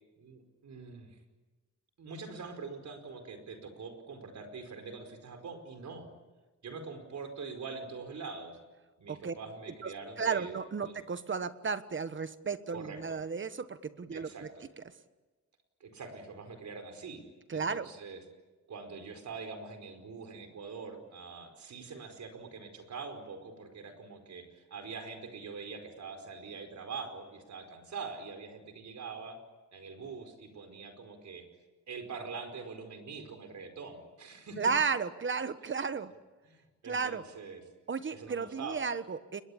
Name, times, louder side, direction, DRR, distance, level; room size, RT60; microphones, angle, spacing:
voice 1, 0.2-1.2 2.0-6.1 6.6-8.6 9.0-10.6 10.8-11.0 12.7-13.2 14.1-14.6 15.8-17.2 17.5-18.2 18.7-29.4 29.7-31.5 31.9-34.7 36.5-37.6 38.1-38.8, right 4 dB, 70° right, 7 dB, 5.1 m, -44 dB
voice 2, 10.2-14.3 17.5-17.9 34.6-36.1 36.8-37.2 37.9-39.4, right 5 dB, 40° right, 12 dB, 1.3 m, -33 dB
30.0 x 22.0 x 8.7 m, 1.2 s
wide cardioid pair, 120°, 30 cm